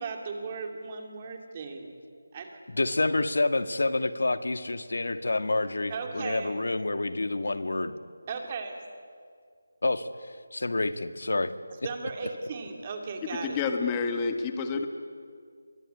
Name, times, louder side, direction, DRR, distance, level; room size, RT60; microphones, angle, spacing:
voice 1, 0.0-1.9 2.3-2.5 5.9-6.6 8.3-8.8 11.8-13.6, right 4 dB, 20° right, 3 dB, 2.7 m, -36 dB
voice 2, 2.7-7.9 9.8-10.4 10.6-11.5, left 2 dB, 70° left, 10 dB, 1.8 m, -28 dB
voice 3, 13.4-14.9, left 5 dB, 15° left, 6 dB, 1.4 m, -28 dB
25.0 x 23.0 x 9.8 m, 2.1 s
figure-of-eight pair, 175°, 0 cm